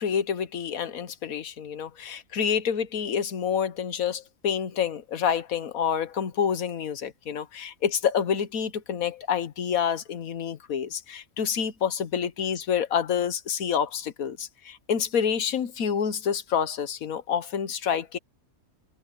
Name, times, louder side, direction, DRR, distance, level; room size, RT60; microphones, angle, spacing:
voice 1, 0.0-18.2, left 7 dB, 80° left, 1.5 m, -28 dB
omnidirectional pair, 1.5 m